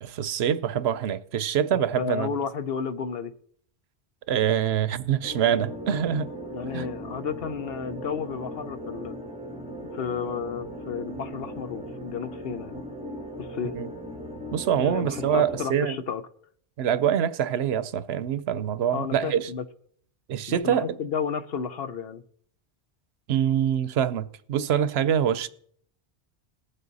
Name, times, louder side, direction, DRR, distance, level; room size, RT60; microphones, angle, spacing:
voice 1, 0.0-2.3 4.3-6.3 6.7-6.9 13.7-13.9 14.5-16.0 16.8-19.5 20.3-21.0 23.3-25.5, right 9 dB, 75° right, 0.9 m, -25 dB
voice 2, 1.7-3.3 6.5-9.2 9.9-12.8 13.4-13.8 14.8-16.3 18.9-19.6 20.5-22.2, left 6 dB, 65° left, 0.9 m, -32 dB
sound 1, 5.2-15.7, equal, 5° right, 1.0 m, -38 dB
19.0 x 7.7 x 4.0 m
omnidirectional pair, 1.1 m